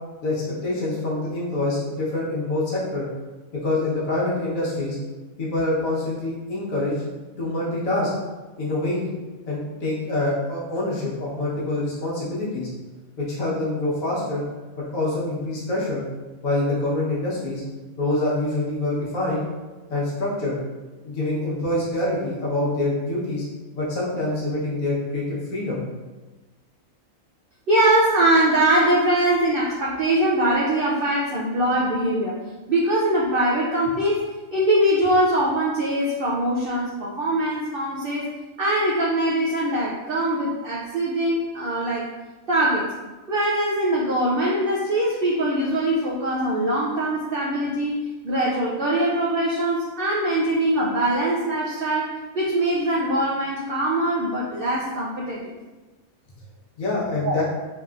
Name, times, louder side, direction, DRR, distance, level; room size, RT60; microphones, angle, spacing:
voice 1, 0.2-3.0 3.6-5.0 5.4-7.0 7.4-8.1 8.6-9.0 9.5-12.7 13.2-14.4 14.8-16.0 16.4-17.6 18.0-19.4 19.9-20.5 21.0-23.4 23.7-25.8 56.8-57.4, left 2 dB, 70° left, -6 dB, 1.4 m, -25 dB
voice 2, 27.7-32.4 32.7-34.2 34.5-38.3 38.6-42.1 42.5-42.9 43.3-55.6 57.2-57.4, right 1 dB, 70° right, -5 dB, 0.5 m, -22 dB
3.5 x 3.0 x 2.4 m, 1.2 s
omnidirectional pair, 1.5 m